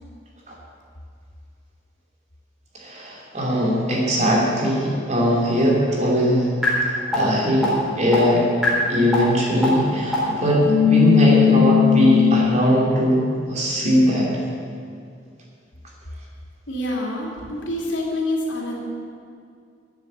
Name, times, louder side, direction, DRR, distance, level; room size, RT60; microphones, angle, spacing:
voice 1, 2.7-6.5 6.9-8.4 8.9-14.3, equal, 35° right, -3 dB, 3.1 m, -20 dB
sound 1, 6.6-6.7 7.1-7.2 7.6-7.7 8.1-8.2 8.6-8.7 9.1-9.2 9.6-9.7 10.1-10.2 10.6-12.4, left 9 dB, ahead, 4.1 m, -17 dB
voice 2, 16.7-18.7, left 1 dB, 85° left, -2 dB, 3.0 m, -26 dB
11.5 x 9.6 x 8.3 m, 2.3 s
head